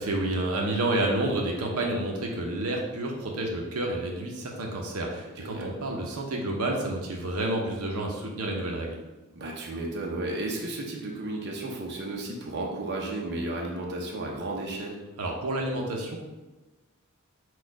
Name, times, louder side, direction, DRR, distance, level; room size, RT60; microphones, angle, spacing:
voice 1, 0.0-9.0 15.2-16.2, right 1 dB, 90° right, 0 dB, 0.7 m, -29 dB
voice 2, 5.3-5.7 9.3-15.0, right 2 dB, 55° right, -1 dB, 0.7 m, -33 dB
4.3 x 2.3 x 4.6 m, 1.1 s
head